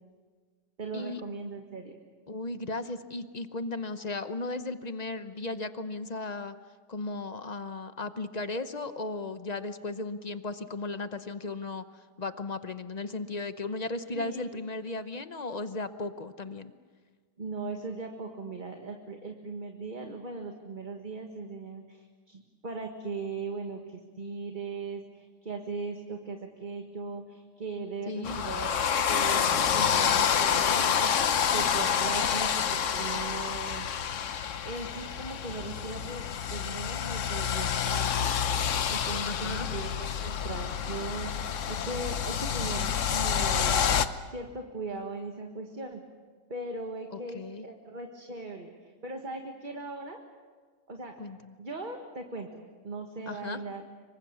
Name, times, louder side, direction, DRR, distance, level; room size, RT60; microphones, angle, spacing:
voice 1, 0.8-2.0 14.1-14.5 17.4-33.8 34.6-38.3 38.8-43.9 44.3-46.0 46.5-48.7 49.0-50.2 50.9-51.1 51.6-53.8, right 3 dB, 30° right, 3 dB, 1.7 m, -39 dB
voice 2, 2.3-6.5 6.9-11.8 12.2-16.7 28.1-28.4 39.3-39.7 47.1-47.7 51.2-51.5 53.3-53.6, left 3 dB, 35° left, 10 dB, 0.7 m, -36 dB
sound 1, 28.2-44.1, left 8 dB, 55° left, 1.1 m, -28 dB
26.5 x 24.0 x 6.9 m, 1.5 s
omnidirectional pair, 1.8 m